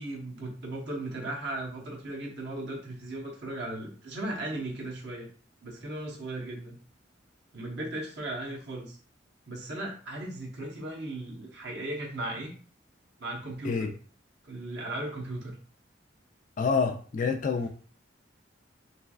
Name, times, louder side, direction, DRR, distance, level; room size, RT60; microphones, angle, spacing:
voice 1, 0.0-5.3 5.6-6.8 7.5-9.0 9.5-12.5 13.2-13.9 14.4-15.6, right 1 dB, 65° right, -2 dB, 1.0 m, -37 dB
voice 2, 16.6-17.7, left 5 dB, 45° left, 6 dB, 0.3 m, -27 dB
3.2 x 3.0 x 2.4 m, 0.42 s
head